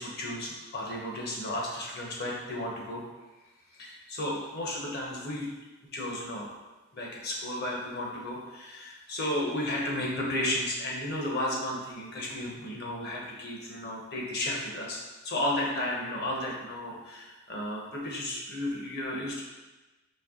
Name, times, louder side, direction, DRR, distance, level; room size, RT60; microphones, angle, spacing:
voice 1, 0.0-3.0 3.8-5.5 5.9-6.5 6.9-15.0 15.2-19.4, left 1 dB, 50° left, -2 dB, 0.9 m, -33 dB
4.4 x 3.0 x 3.7 m, 1.1 s
head